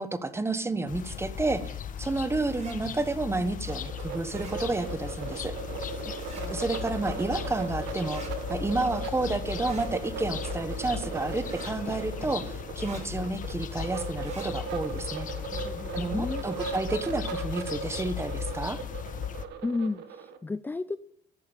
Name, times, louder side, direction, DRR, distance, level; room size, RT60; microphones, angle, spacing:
voice 1, 0.0-5.5 6.5-8.2 8.5-15.3 15.9-18.8, right 2 dB, 15° right, 12 dB, 1.3 m, -30 dB
sound 1, 0.9-19.4, left 9 dB, 50° left, 1.4 m, -37 dB
sound 2, 2.5-2.8 4.3-4.6 6.1-6.5 8.0-8.3 9.6-9.9 11.4-11.8 12.8-13.0 14.2-14.5, right 4 dB, 40° right, 4.8 m, -46 dB
sound 3, 3.7-20.4, right 5 dB, 85° right, 1.6 m, -38 dB
voice 2, 6.0-6.6 15.5-16.4 19.6-21.0, left 3 dB, 10° left, 15 dB, 0.4 m, -34 dB
14.0 x 11.5 x 5.3 m, 0.65 s
cardioid pair, 110°, 17 cm